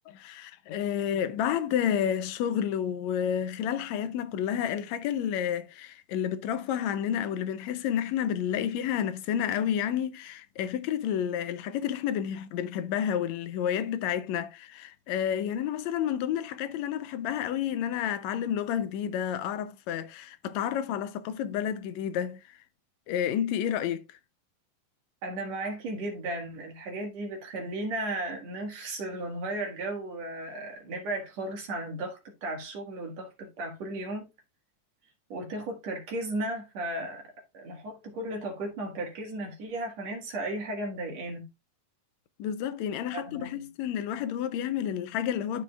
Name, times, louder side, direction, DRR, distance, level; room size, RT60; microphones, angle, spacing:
voice 1, 0.1-22.6 23.1-24.0 42.4-45.6, left 9 dB, 80° left, 1.7 m, -30 dB
voice 2, 25.2-34.3 35.3-37.2 37.5-41.4 43.1-43.7, right 2 dB, 60° right, 2.7 m, -35 dB
13.0 x 4.8 x 2.3 m
omnidirectional pair, 3.6 m